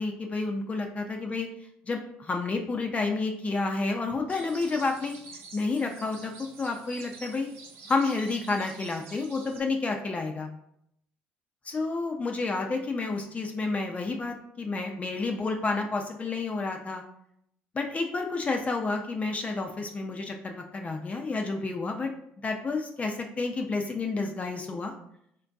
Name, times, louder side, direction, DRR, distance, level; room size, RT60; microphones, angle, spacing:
voice 1, 0.0-1.5 1.9-5.2 5.5-6.3 6.6-7.5 7.9-10.5 11.6-17.0 17.7-22.1 22.4-24.9, left 3 dB, 30° left, 3 dB, 0.5 m, -30 dB
sound 1, 4.3-9.6, right 4 dB, 75° right, 1.0 m, -47 dB
3.7 x 2.6 x 3.4 m, 0.73 s
supercardioid pair, 75°, 4 cm